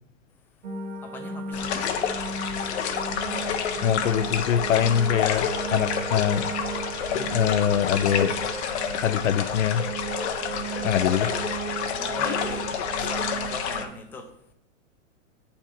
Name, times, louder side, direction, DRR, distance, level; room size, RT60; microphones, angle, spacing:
sound 1, 0.6-13.8, right 6 dB, 90° right, 1.2 m, -35 dB
voice 1, 1.0-2.0 11.9-12.7 13.0-14.3, left 4 dB, 5° left, 0.4 m, -39 dB
sound 2, 1.5-13.8, left 8 dB, 60° left, 1.0 m, -29 dB
voice 2, 3.8-6.5 7.1-8.3 8.9-9.9 10.8-11.4, left 9 dB, 80° left, 0.6 m, -24 dB
8.6 x 4.4 x 4.4 m
hypercardioid pair, 130°, 38 cm